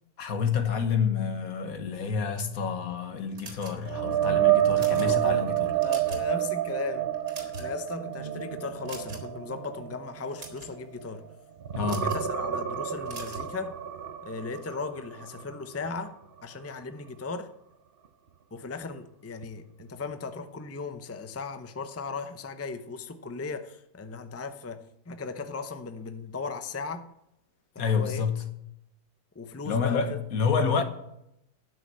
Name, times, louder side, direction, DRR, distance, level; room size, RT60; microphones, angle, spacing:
voice 1, 0.2-5.7 11.7-12.1 27.8-28.4 29.6-30.8, left 6 dB, 75° left, 1.7 m, -28 dB
sound 1, 3.4-4.1 4.6-5.1 5.6-6.3 6.6-6.8 7.1-7.9 8.9-9.4 10.2-10.7 11.8-12.3 13.1-13.5, right 3 dB, 75° right, 2.6 m, -42 dB
sound 2, 3.8-11.3 11.6-15.5 15.9-16.1 19.4-19.5, right 12 dB, 50° right, 0.8 m, -29 dB
voice 2, 4.8-11.2 11.9-13.7 14.2-16.1 16.4-17.5 18.5-27.1 27.7-28.3 29.3-30.2, left 4 dB, 15° left, 0.5 m, -37 dB
11.5 x 6.3 x 7.5 m
omnidirectional pair, 1.5 m